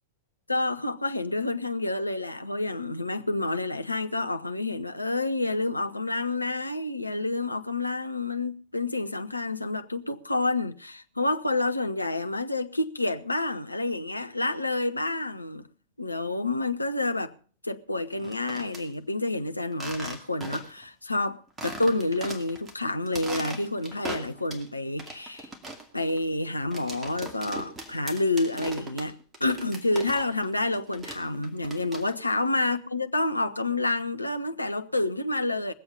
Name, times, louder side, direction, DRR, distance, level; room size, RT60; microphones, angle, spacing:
voice 1, 0.5-15.7 16.0-17.3 17.6-25.5 25.9-35.7, left 2 dB, 85° left, 0.7 m, -29 dB
sound 1, 18.1-18.8 19.7-20.8 21.1-21.2 21.6-22.7 23.1-24.7 25.0-30.5 30.7-32.3, right 2 dB, 15° right, 2.4 m, -39 dB
21.0 x 7.8 x 5.4 m
figure-of-eight pair, 90°, 0 cm